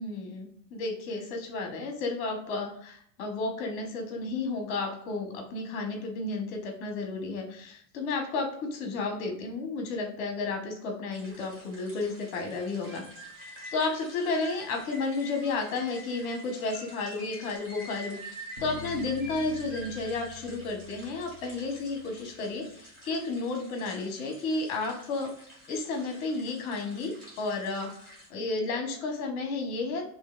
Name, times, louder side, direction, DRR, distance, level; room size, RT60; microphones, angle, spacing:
voice 1, 0.0-13.0 13.4-25.3 25.7-30.0, left 3 dB, 25° left, 2 dB, 1.0 m, -32 dB
sound 1, 11.1-28.3, equal, 15° right, 1.9 m, -52 dB
sound 2, 12.6-20.4, right 1 dB, ahead, 1.1 m, -45 dB
sound 3, 18.6-22.7, left 2 dB, 30° right, 1.3 m, -47 dB
6.4 x 3.0 x 2.4 m, 0.65 s
supercardioid pair, 175°, 49 cm